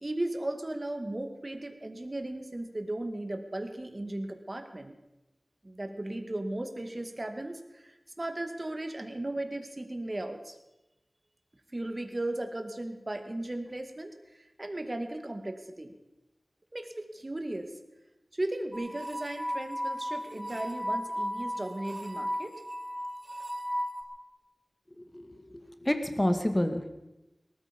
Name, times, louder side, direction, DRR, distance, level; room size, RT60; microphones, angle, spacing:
voice 1, 0.0-4.9 5.6-10.6 11.7-15.9 16.7-17.7 18.3-22.6, right 1 dB, 40° right, 6 dB, 2.1 m, -36 dB
sound 1, 18.7-24.0, equal, 20° right, 4.8 m, -35 dB
voice 2, 25.1-26.9, left 1 dB, 20° left, 7 dB, 2.1 m, -29 dB
19.0 x 14.0 x 5.3 m, 0.99 s
wide cardioid pair, 45°, 0 cm